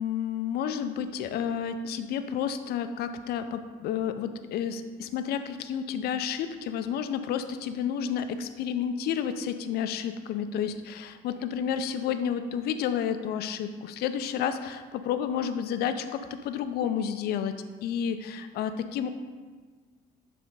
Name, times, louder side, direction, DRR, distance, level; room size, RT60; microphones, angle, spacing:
voice 1, 0.0-19.1, left 8 dB, 70° left, 10 dB, 0.5 m, -31 dB
7.4 x 3.4 x 5.3 m, 1.5 s
cardioid pair, 110°, 17 cm